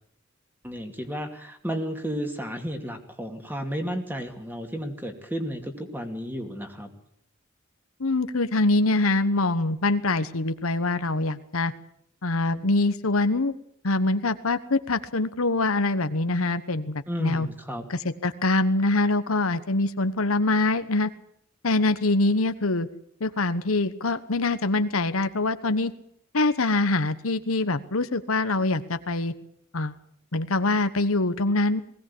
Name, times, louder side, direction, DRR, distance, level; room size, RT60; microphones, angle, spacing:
voice 1, 0.6-6.9 17.1-17.8, equal, 10° right, 5 dB, 2.6 m, -32 dB
voice 2, 8.0-11.7 12.2-13.5 13.8-17.5 17.9-21.1 21.6-22.9 23.2-25.9 26.3-29.3 29.7-29.9 30.3-31.8, left 2 dB, 75° left, 11 dB, 1.2 m, -24 dB
20.0 x 17.0 x 8.6 m, 0.68 s
head